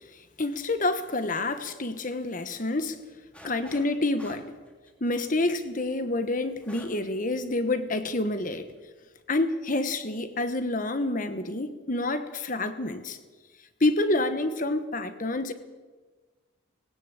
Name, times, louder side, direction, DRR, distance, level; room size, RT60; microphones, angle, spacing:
voice 1, 0.4-3.0 3.4-4.5 5.0-8.7 9.3-13.2 13.8-15.5, left 2 dB, 40° left, 10 dB, 1.2 m, -28 dB
sound 1, 3.3-3.9 4.2-7.1 7.4-7.5 8.1-8.4, equal, 5° left, 2.5 m, -49 dB
18.0 x 17.5 x 8.3 m, 1.3 s
head